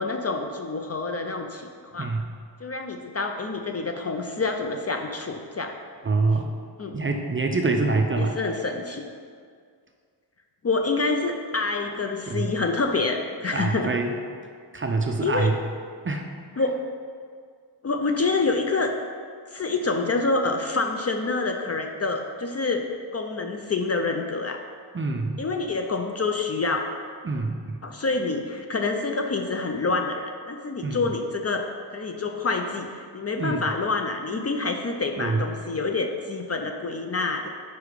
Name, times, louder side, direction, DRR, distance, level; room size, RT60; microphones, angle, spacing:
voice 1, 0.0-1.7 1.9-2.1 2.6-5.7 6.8-7.0 8.2-9.1 10.6-13.9 15.2-15.5 16.6-16.8 17.8-18.9 19.5-22.8 23.1-24.6 25.4-26.8 27.8-31.7 31.9-37.5, left 3 dB, 35° left, 4 dB, 0.4 m, -27 dB
voice 2, 6.0-6.5 6.9-8.4 12.3-12.5 13.5-14.1 14.7-15.6 16.0-16.3 24.9-25.4 27.2-27.8 30.8-31.0 33.4-33.7 35.2-35.4, right 3 dB, 30° right, 3 dB, 0.4 m, -25 dB
4.9 x 4.7 x 5.0 m, 2.1 s
wide cardioid pair, 120°, 44 cm